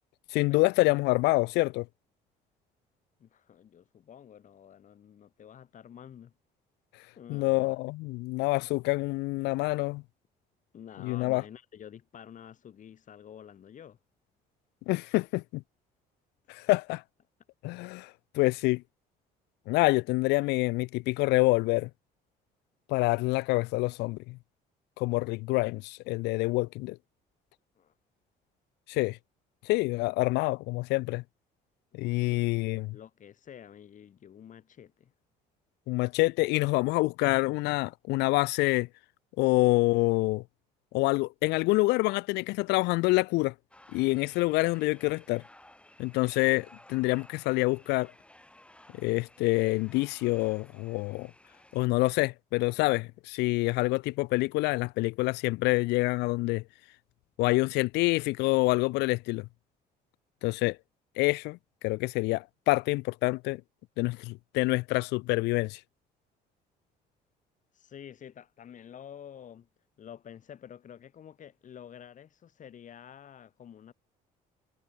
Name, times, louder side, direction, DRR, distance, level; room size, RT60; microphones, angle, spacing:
voice 1, 0.3-1.9 7.3-10.0 11.0-11.4 14.9-15.6 16.5-17.0 17.6-18.8 19.7-21.9 22.9-24.4 25.0-27.0 28.9-29.2 29.7-31.2 31.9-33.0 35.9-38.9 39.4-40.4 40.9-43.5 43.9-45.4 46.0-48.1 49.0-51.3 51.7-56.6 57.4-59.5 60.4-60.8 61.2-61.6 61.8-63.6 64.0-65.8, left 22 dB, 90° left, 0.5 m, -27 dB
voice 2, 3.2-6.3 7.2-7.8 10.7-14.0 27.8-27.9 32.0-32.6 32.9-35.1 67.7-69.7 70.0-73.9, left 9 dB, 50° left, 3.9 m, -49 dB
sound 1, 43.7-51.9, left 1 dB, 5° left, 5.4 m, -56 dB
cardioid pair, 110°, 17 cm